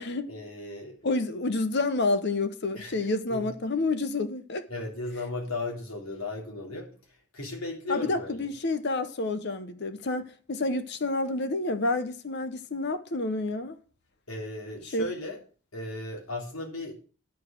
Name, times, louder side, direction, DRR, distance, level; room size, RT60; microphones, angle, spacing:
voice 1, 0.3-1.0 2.7-2.9 3.3-3.5 4.7-8.5 14.3-15.4 15.7-16.9, left 2 dB, 75° left, 3.5 m, -36 dB
voice 2, 1.0-4.7 7.9-13.8 14.9-15.1, left 2 dB, 50° left, 0.7 m, -29 dB
10.5 x 4.9 x 7.6 m
head